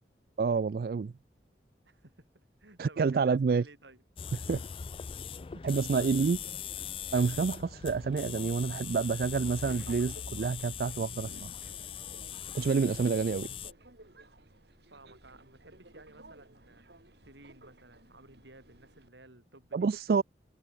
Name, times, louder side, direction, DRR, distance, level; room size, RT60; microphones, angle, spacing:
voice 1, 0.4-1.1 2.8-3.6 4.5-4.6 5.6-6.4 7.1-11.5 12.5-13.5 19.7-20.2, right 5 dB, 55° right, 0.3 m, -28 dB
voice 2, 1.9-4.0 14.9-16.8 17.1-19.9, right 2 dB, 85° right, 6.9 m, -56 dB
sound 1, 4.2-13.7, left 8 dB, 30° left, 0.3 m, -41 dB
Subway metro underground, 9.0-19.1, right 1 dB, 70° right, 5.3 m, -55 dB
head